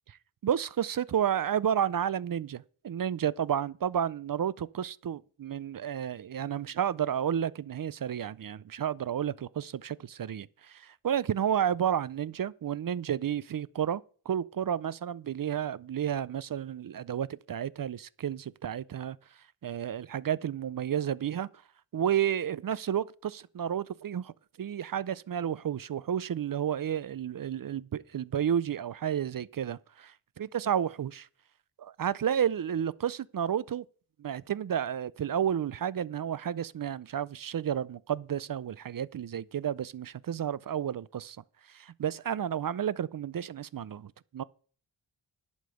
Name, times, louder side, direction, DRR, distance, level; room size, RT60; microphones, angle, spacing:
voice 1, 0.4-14.0 14.3-19.2 19.6-21.5 21.9-24.3 24.6-31.3 31.8-33.8 34.2-41.4 41.7-44.4, right 9 dB, 45° right, 0.4 m, -31 dB
11.5 x 5.2 x 6.9 m
wide cardioid pair, 140°, 50 cm